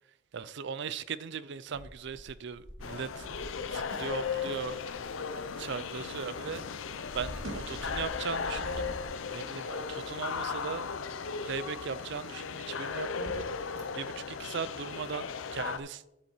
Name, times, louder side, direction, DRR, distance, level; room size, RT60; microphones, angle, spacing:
voice 1, 0.3-4.8 5.3-6.6 7.1-9.0 9.3-10.9 11.4-13.5 13.9-16.0, right 6 dB, 60° right, 0.5 m, -38 dB
sound 1, 1.1-14.7, equal, 15° right, 1.5 m, -58 dB
sound 2, 1.9-6.2 6.5-9.0, equal, 85° right, 1.9 m, -45 dB
sound 3, 2.8-15.8, left 5 dB, 75° left, 0.6 m, -36 dB
9.8 x 7.8 x 4.4 m
head